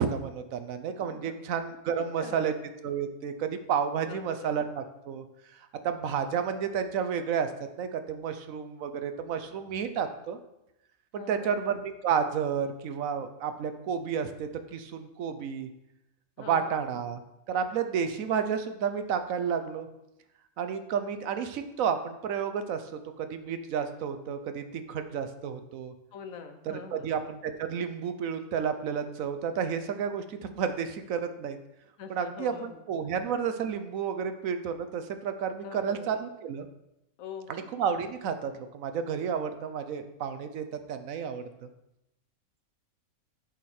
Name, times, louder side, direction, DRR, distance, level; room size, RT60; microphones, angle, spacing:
voice 1, 0.0-2.5 2.8-5.2 5.8-7.5 7.8-10.4 11.1-15.7 16.4-17.2 17.5-19.9 20.6-22.9 23.2-25.9 26.7-31.6 32.1-36.7 37.5-41.7, right 7 dB, 75° right, 9 dB, 1.1 m, -31 dB
voice 2, 0.9-1.5 2.0-2.5 4.0-4.6 11.1-11.6 16.4-16.8 26.1-27.1 32.0-32.8 35.6-36.1 37.2-37.7, left 6 dB, 75° left, 8 dB, 1.2 m, -44 dB
7.9 x 6.4 x 4.3 m, 0.87 s
omnidirectional pair, 1.4 m